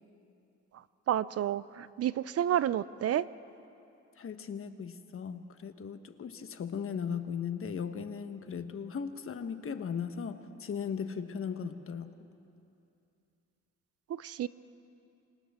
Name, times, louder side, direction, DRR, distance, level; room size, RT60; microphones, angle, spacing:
voice 1, 1.1-3.3 14.1-14.5, right 11 dB, 55° right, 17 dB, 0.5 m, -30 dB
voice 2, 4.2-12.1, left 7 dB, 45° left, 9 dB, 1.2 m, -37 dB
27.5 x 26.0 x 3.7 m, 2.7 s
cardioid pair, 90°, 30 cm